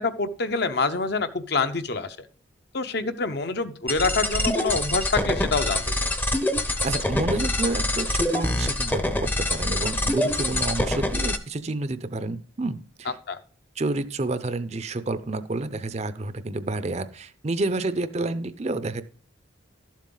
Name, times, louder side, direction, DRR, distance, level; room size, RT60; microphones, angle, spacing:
voice 1, 0.0-2.2 2.7-6.1 13.3-13.4, left 4 dB, 55° left, 9 dB, 0.8 m, -26 dB
sound 1, 3.9-11.4, left 1 dB, 10° left, 0.6 m, -25 dB
voice 2, 6.8-13.1 13.8-19.0, right 2 dB, 35° right, 13 dB, 0.6 m, -29 dB
12.0 x 7.3 x 3.9 m, 0.43 s
head